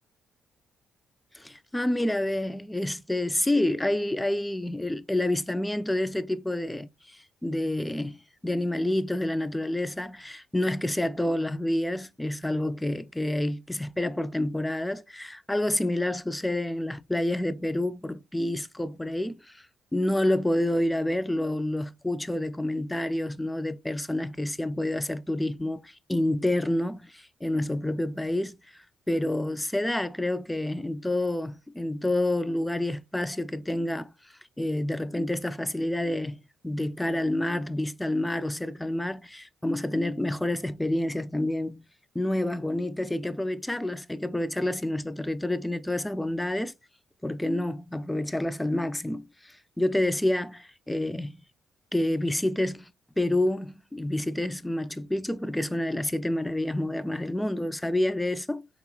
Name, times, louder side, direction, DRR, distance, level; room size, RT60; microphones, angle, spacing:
voice 1, 1.3-19.6 19.9-28.6 29.1-34.1 34.6-41.8 42.1-46.7 47.2-51.4 51.9-52.9 53.2-58.7, left 1 dB, 10° left, 0.3 m, -28 dB
4.1 x 2.9 x 2.3 m
cardioid pair, 90°, 0 cm